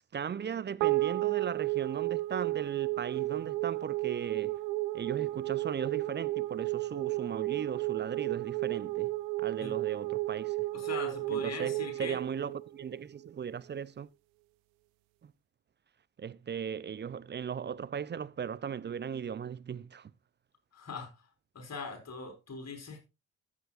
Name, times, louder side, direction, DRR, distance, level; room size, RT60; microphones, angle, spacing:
voice 1, 0.1-4.6 4.9-9.1 9.4-10.7 11.3-14.1 15.2-15.3 16.2-20.1, right 7 dB, 25° right, 0.6 m, -37 dB
sound 1, 0.8-13.3, right 20 dB, 75° right, 0.7 m, -33 dB
voice 2, 10.7-12.2 20.7-21.1 21.5-23.0, left 4 dB, 40° left, 4.7 m, -41 dB
13.0 x 8.9 x 2.5 m
figure-of-eight pair, 45°, 40 cm